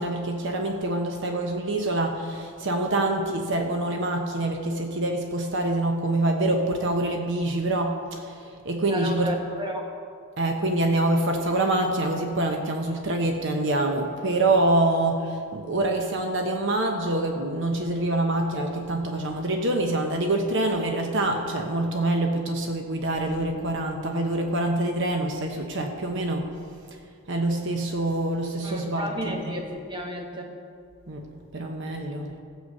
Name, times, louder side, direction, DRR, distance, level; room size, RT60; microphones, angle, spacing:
voice 1, 0.0-8.4 8.6-9.4 10.4-26.5 27.3-29.6 31.1-31.3 31.5-32.3, right 2 dB, 55° right, 3 dB, 0.9 m, -25 dB
voice 2, 8.8-9.9 28.6-30.5, equal, 20° right, 2 dB, 1.3 m, -33 dB
15.0 x 8.1 x 5.5 m, 2.4 s
head